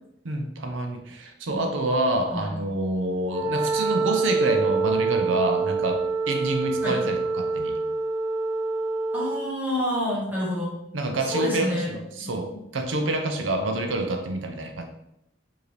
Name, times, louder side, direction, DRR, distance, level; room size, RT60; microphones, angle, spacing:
voice 1, 0.2-7.8 10.9-14.8, right 2 dB, 90° right, 4 dB, 0.6 m, -27 dB
Wind instrument woodwind instrument, 3.2-9.5, right 4 dB, 15° left, 1.2 m, -26 dB
voice 2, 9.1-10.8 11.2-11.9 12.2-12.6, equal, 10° right, -7 dB, 1.4 m, -28 dB
4.8 x 2.8 x 3.2 m, 0.78 s
head